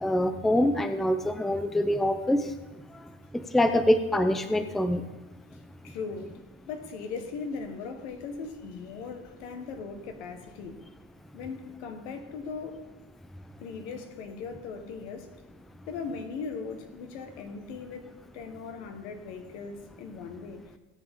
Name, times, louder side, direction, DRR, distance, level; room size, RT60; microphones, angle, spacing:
voice 1, 0.0-2.5 3.3-5.0, left 1 dB, ahead, 10 dB, 0.5 m, -25 dB
voice 2, 5.8-10.8 11.3-12.9 13.6-15.4 15.9-20.7, left 5 dB, 80° left, 6 dB, 1.6 m, -39 dB
17.0 x 7.6 x 3.8 m, 1.1 s
supercardioid pair, 115°, 34 cm